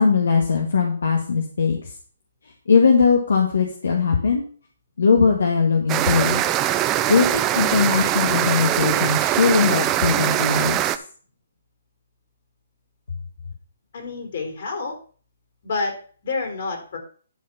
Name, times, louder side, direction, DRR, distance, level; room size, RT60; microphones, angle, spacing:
voice 1, 0.0-1.9 2.7-4.4 5.0-6.4 7.1-10.9, left 5 dB, 75° left, 1 dB, 1.8 m, -20 dB
sound 1, 5.9-11.0, right 13 dB, 20° right, 0.5 m, -22 dB
voice 2, 13.9-15.0 15.6-16.0 16.2-17.0, left 3 dB, 55° left, 3 dB, 3.9 m, -28 dB
11.5 x 4.5 x 5.8 m, 0.43 s
hypercardioid pair, 145°, 0 cm